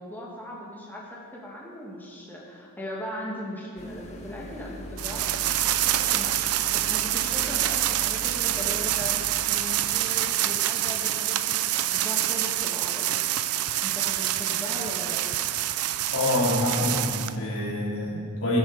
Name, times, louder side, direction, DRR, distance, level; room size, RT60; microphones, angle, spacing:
voice 1, 0.0-5.3 5.7-9.2 9.5-13.1 13.8-15.2, left 1 dB, 10° left, -4 dB, 2.1 m, -38 dB
sound 1, 3.8-9.5, equal, 30° left, 1.3 m, -41 dB
sound 2, 5.0-17.3, right 13 dB, 80° right, 0.5 m, -26 dB
voice 2, 16.1-18.6, left 1 dB, 70° left, -5 dB, 3.4 m, -26 dB
20.5 x 8.0 x 5.0 m, 2.2 s
head